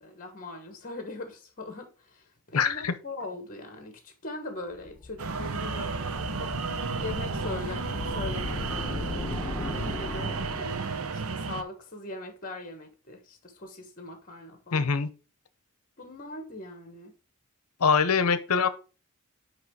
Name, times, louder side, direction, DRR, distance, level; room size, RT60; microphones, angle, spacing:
voice 1, 0.0-5.9 6.4-6.5 7.0-14.9 16.0-17.1, left 2 dB, 40° left, 1.3 m, -41 dB
voice 2, 2.5-2.9 14.7-15.1 17.8-18.7, left 5 dB, 75° left, 0.8 m, -23 dB
sound 1, 4.8-11.3, left 3 dB, 20° left, 0.3 m, -37 dB
sound 2, 5.2-11.6, right 5 dB, 70° right, 0.7 m, -33 dB
9.3 x 3.1 x 4.7 m
head